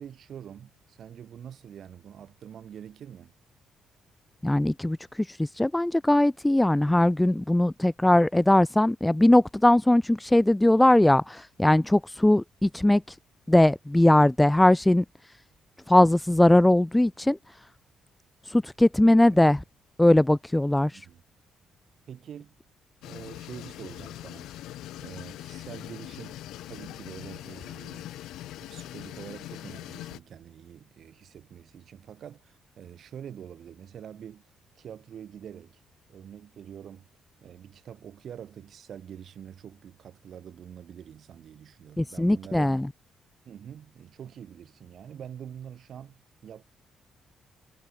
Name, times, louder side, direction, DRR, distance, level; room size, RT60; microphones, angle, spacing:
voice 1, 0.0-3.3 19.3-19.5 20.9-21.2 22.1-22.6 23.0-24.5 25.0-26.4 26.7-28.2 28.6-34.5 34.8-35.8 36.1-37.1 37.4-42.8 43.4-46.6, right 9 dB, 60° right, 7.8 m, -45 dB
voice 2, 4.4-13.2 13.5-15.0 15.9-17.4 18.4-19.6 20.0-21.1 42.0-42.9, left 1 dB, 10° left, 0.6 m, -20 dB
sound 1, 23.0-30.2, left 14 dB, 85° left, 6.0 m, -42 dB
cardioid pair, 90°, 0 cm